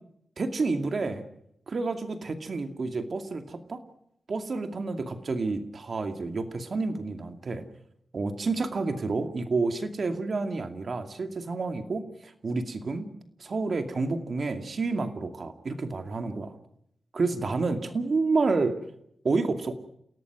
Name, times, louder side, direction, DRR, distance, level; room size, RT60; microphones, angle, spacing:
voice 1, 0.4-1.2 1.7-3.8 4.3-7.6 8.1-13.1 13.4-16.5 17.1-18.8 19.2-19.7, right 3 dB, 60° right, 7 dB, 2.4 m, -29 dB
29.5 x 17.5 x 6.1 m, 0.73 s
cardioid pair, 75°, 0 cm